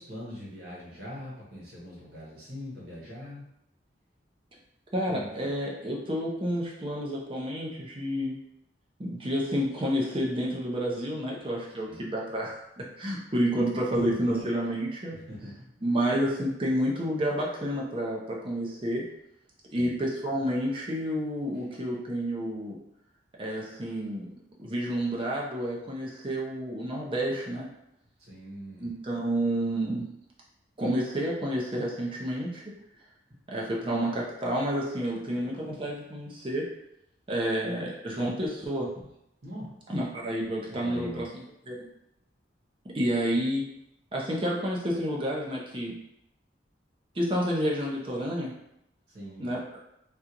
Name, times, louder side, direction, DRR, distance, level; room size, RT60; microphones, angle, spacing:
voice 1, 0.0-3.4 5.1-5.6 11.9-12.1 13.9-14.5 15.3-15.7 19.7-20.0 28.2-29.0 39.4-39.7 40.7-41.3 49.1-49.5, equal, 60° right, -6 dB, 1.3 m, -41 dB
voice 2, 4.9-8.3 9.0-15.2 15.8-19.1 19.7-22.8 23.4-24.3 24.6-27.7 28.8-30.0 30.8-32.6 33.5-36.6 37.3-38.9 39.9-41.8 42.9-43.7 44.1-46.0 47.1-48.5 49.4-49.8, equal, 30° right, -3 dB, 0.7 m, -30 dB
3.4 x 2.5 x 2.9 m, 0.82 s
head